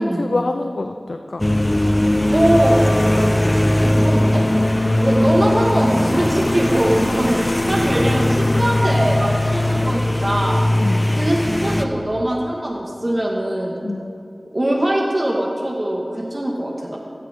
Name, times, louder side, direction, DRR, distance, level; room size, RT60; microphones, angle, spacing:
voice 1, 0.0-1.5 10.8-11.1 13.8-14.1, left 2 dB, 80° left, 6 dB, 0.5 m, -25 dB
sound 1, 1.4-11.8, left 1 dB, 30° left, 0.8 m, -19 dB
voice 2, 2.3-2.8 3.8-4.4 5.0-10.6 11.2-13.8 14.5-17.0, right 1 dB, 35° right, -1 dB, 1.7 m, -21 dB
16.0 x 15.0 x 3.7 m, 2.6 s
wide cardioid pair, 50°, 0 cm